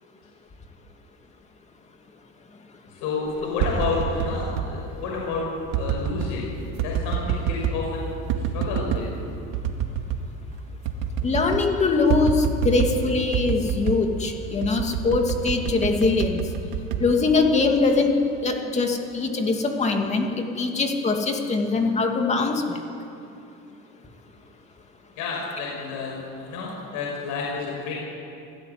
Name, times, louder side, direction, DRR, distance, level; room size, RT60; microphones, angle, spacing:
voice 1, 3.0-5.5 5.8-6.5 6.8-8.1 8.5-9.0 11.2-11.3 25.2-27.9, left 4 dB, 70° left, -2 dB, 5.8 m, -30 dB
sound 1, 3.4-4.7 5.7-6.3 6.8-7.8 8.3-9.1 9.5-10.3 10.5-10.6 10.9-11.7 12.1-13.0 13.3-14.1 14.6-17.7 18.1-18.5, right 7 dB, 75° right, 2.3 m, -27 dB
voice 2, 11.2-16.4 17.0-18.1 18.4-22.8, left 3 dB, 20° left, 3 dB, 2.6 m, -22 dB
25.5 x 17.5 x 9.7 m, 2.7 s
cardioid pair, 160°, 33 cm